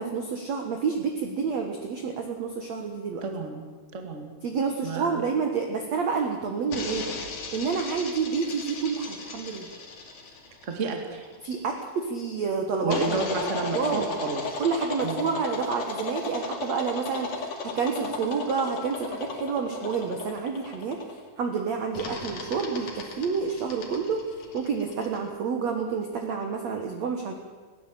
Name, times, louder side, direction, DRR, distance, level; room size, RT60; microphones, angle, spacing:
voice 1, 0.0-3.2 4.4-7.1 7.5-9.7 11.4-13.2 13.4-14.1 14.6-24.2 24.5-27.3, right 5 dB, 65° right, 4 dB, 1.7 m, -29 dB
voice 2, 3.2-3.6 3.9-4.3 4.8-5.2 10.6-11.3 12.8-14.6 15.0-15.3, right 4 dB, 30° right, 4 dB, 1.3 m, -31 dB
sound 1, 6.7-11.6 12.9-21.3 21.9-25.2, left 4 dB, 50° left, 3.6 m, -35 dB
20.0 x 17.0 x 7.7 m, 1.5 s
omnidirectional pair, 5.2 m